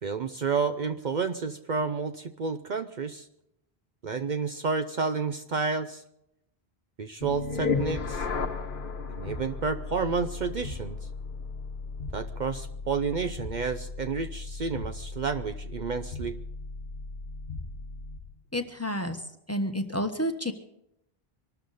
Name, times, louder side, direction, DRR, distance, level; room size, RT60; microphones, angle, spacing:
voice 1, 0.0-3.3 4.0-6.0 7.0-8.3 9.2-11.1 12.1-16.4, right 5 dB, 50° right, 8 dB, 0.7 m, -30 dB
sound 1, 7.2-18.3, left 4 dB, 60° left, 1.2 m, -35 dB
voice 2, 18.5-20.5, equal, 15° left, 6 dB, 1.1 m, -30 dB
24.0 x 13.0 x 4.1 m, 0.81 s
omnidirectional pair, 1.0 m